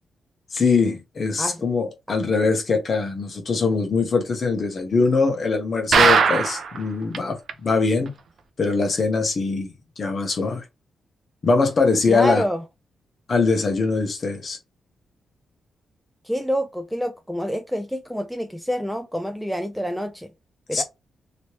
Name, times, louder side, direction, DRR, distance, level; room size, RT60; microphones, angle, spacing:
voice 1, 0.5-8.1 8.6-10.6 11.4-12.4 13.3-14.6 20.7-20.8, left 4 dB, 40° left, 0.9 m, -22 dB
sound 1, 5.9-6.8 7.1-7.2 7.5-7.6 8.1-8.2, right 5 dB, 55° right, 0.6 m, -17 dB
voice 2, 12.1-12.6 16.2-20.3 20.7-20.8, equal, ahead, 0.3 m, -27 dB
3.1 x 2.9 x 2.9 m
wide cardioid pair, 160°, 0 cm